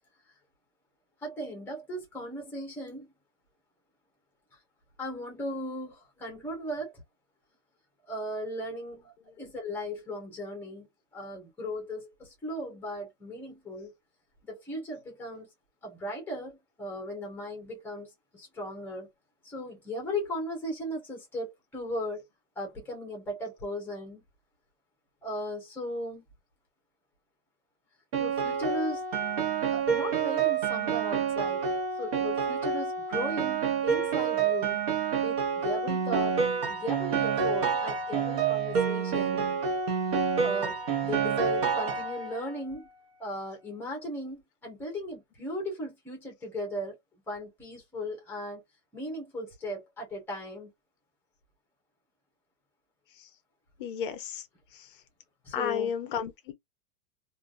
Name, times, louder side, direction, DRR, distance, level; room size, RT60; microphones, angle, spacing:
voice 1, 1.2-3.1 5.0-7.0 8.1-10.9 11.1-13.9 14.5-15.5 15.8-19.1 19.4-22.3 22.6-24.2 25.2-26.2 28.2-29.0 29.7-31.7 32.0-34.8 35.2-39.5 40.4-42.9 43.2-47.0 47.3-48.6 48.9-50.7 55.4-55.9, equal, 5° left, 0.9 m, -37 dB
Piano, 28.1-42.5, right 6 dB, 25° right, 0.6 m, -28 dB
voice 2, 53.8-54.4 55.5-56.5, left 7 dB, 35° left, 0.7 m, -32 dB
3.3 x 2.6 x 2.4 m
supercardioid pair, 170°, 46 cm